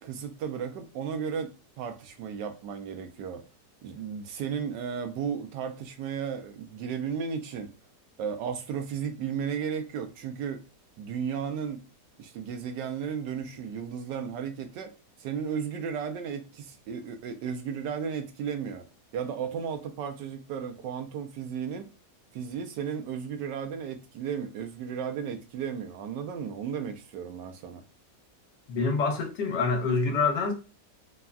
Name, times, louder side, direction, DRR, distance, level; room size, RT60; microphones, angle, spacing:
voice 1, 0.0-1.5 1.8-3.5 3.8-7.7 8.2-10.6 11.0-11.8 12.2-14.9 15.2-18.9 19.1-21.9 22.3-27.8, right 7 dB, 80° right, 1.2 m, -34 dB
voice 2, 28.7-30.5, left 4 dB, 75° left, 1.2 m, -26 dB
3.5 x 2.2 x 2.3 m
omnidirectional pair, 1.9 m